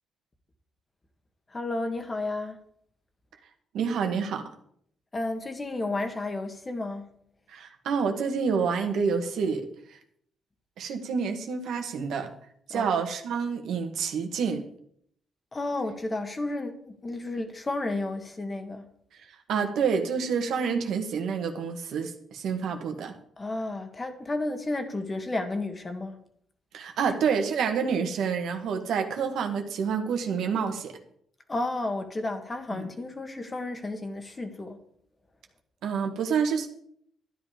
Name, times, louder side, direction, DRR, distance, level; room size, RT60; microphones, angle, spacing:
voice 1, 1.5-2.6 5.1-7.1 12.7-12.9 15.5-18.9 23.4-26.2 31.5-34.8, left 2 dB, 25° left, 1.8 m, -32 dB
voice 2, 3.7-4.5 7.5-9.7 10.8-12.3 12.7-14.7 19.5-23.1 26.7-31.0 32.7-32.9 35.8-36.7, right 6 dB, 75° right, 1.8 m, -28 dB
12.5 x 10.5 x 5.1 m
cardioid pair, 90°, 0 cm